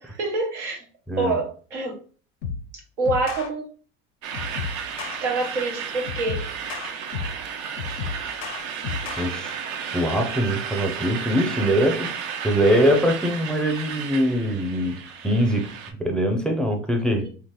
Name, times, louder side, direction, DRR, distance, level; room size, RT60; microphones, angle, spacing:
voice 1, 0.0-0.8 1.2-1.9 3.0-3.7 5.2-6.5, right 3 dB, 90° right, 0.9 m, -26 dB
sound 1, 2.4-2.7 3.1-3.5 4.3-5.2 6.1-7.4 7.8-9.3, left 6 dB, 75° left, 0.5 m, -32 dB
sound 2, 4.2-15.9, right 7 dB, 60° right, 0.6 m, -33 dB
voice 2, 9.2-9.6 9.9-12.1 12.4-15.0 15.2-15.7 16.0-17.3, equal, ahead, 0.5 m, -22 dB
2.9 x 2.4 x 2.7 m
hypercardioid pair, 65°, 35 cm